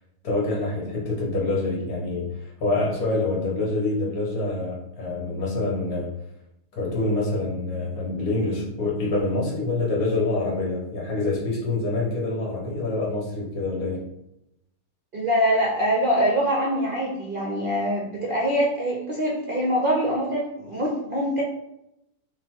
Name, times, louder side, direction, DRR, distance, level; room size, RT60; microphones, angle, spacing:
voice 1, 0.2-6.1 6.7-14.0, left 2 dB, 65° left, -3 dB, 1.6 m, -26 dB
voice 2, 15.1-21.4, equal, 45° right, -4 dB, 0.7 m, -24 dB
5.3 x 2.5 x 3.7 m, 0.83 s
omnidirectional pair, 1.7 m